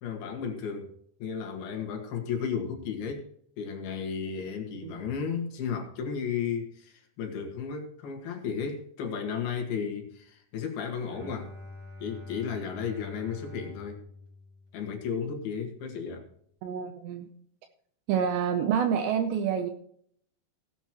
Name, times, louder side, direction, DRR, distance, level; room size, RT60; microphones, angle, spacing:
voice 1, 0.0-0.9 1.2-3.3 3.6-11.5 12.0-14.0 14.7-16.3, left 6 dB, 60° left, 3 dB, 3.3 m, -34 dB
Bowed string instrument, 11.0-15.2, left 2 dB, 5° right, 3.6 m, -45 dB
voice 2, 16.6-17.3 18.1-19.7, right 8 dB, 80° right, 6 dB, 2.7 m, -28 dB
16.5 x 9.1 x 3.1 m, 0.63 s
omnidirectional pair, 5.7 m